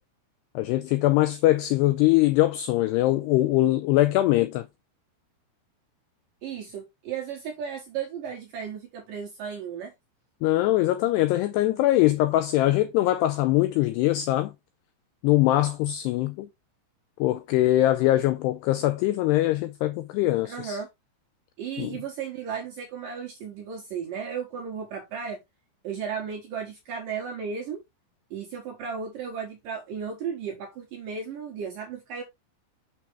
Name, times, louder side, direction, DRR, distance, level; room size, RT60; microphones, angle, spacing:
voice 1, 0.6-4.7 10.4-14.5 15.2-16.5 17.2-20.8 21.8-22.0, left 15 dB, 90° left, 2.4 m, -22 dB
voice 2, 6.4-9.9 20.4-20.9 21.6-25.4 25.8-27.8 28.3-32.2, right 6 dB, 65° right, 2.3 m, -35 dB
7.1 x 6.1 x 3.3 m
omnidirectional pair, 5.4 m